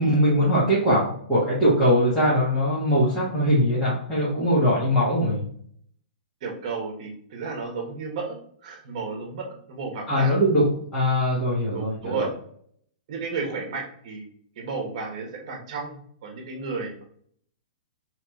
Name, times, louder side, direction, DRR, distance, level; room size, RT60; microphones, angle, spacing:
voice 1, 0.0-5.4 10.1-10.6 10.9-12.3, equal, 10° left, -12 dB, 1.2 m, -21 dB
voice 2, 6.4-10.3 11.7-12.3 13.1-14.3 14.6-17.0, right 4 dB, 45° right, 1 dB, 1.2 m, -33 dB
4.7 x 3.0 x 2.3 m, 0.62 s
hypercardioid pair, 165°, 5 cm